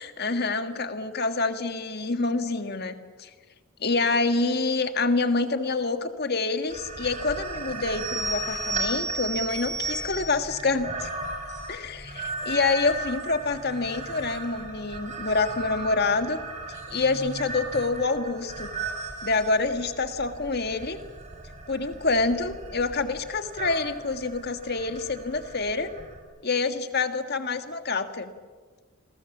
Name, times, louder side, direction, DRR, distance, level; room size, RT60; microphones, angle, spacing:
voice 1, 0.0-3.3 3.8-11.1 11.7-16.4 16.9-18.7 19.2-21.0 21.7-25.9 26.4-28.3, left 3 dB, 50° left, 8 dB, 1.7 m, -27 dB
sound 1, 6.7-26.2, right 2 dB, 35° right, 4.9 m, -36 dB
28.5 x 22.5 x 7.3 m, 1.5 s
head